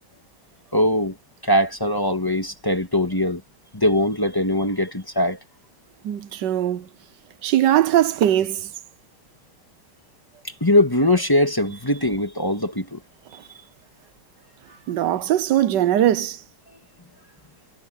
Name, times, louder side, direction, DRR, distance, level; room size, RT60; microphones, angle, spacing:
voice 1, 0.7-1.1 1.4-3.4 3.7-5.4 10.4-13.0, left 1 dB, 15° left, 1.8 m, -21 dB
voice 2, 6.0-6.9 7.4-8.7 14.9-16.4, right 12 dB, 85° right, 1.5 m, -20 dB
omnidirectional pair, 1.8 m